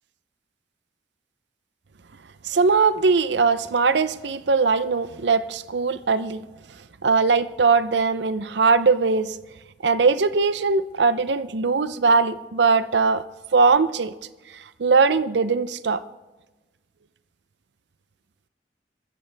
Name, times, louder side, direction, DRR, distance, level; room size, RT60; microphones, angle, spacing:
voice 1, 2.4-6.4 7.0-9.4 9.8-13.2 13.5-14.1 14.5-16.0, right 4 dB, 70° right, 14 dB, 0.6 m, -20 dB
25.0 x 14.5 x 3.4 m, 1.1 s
head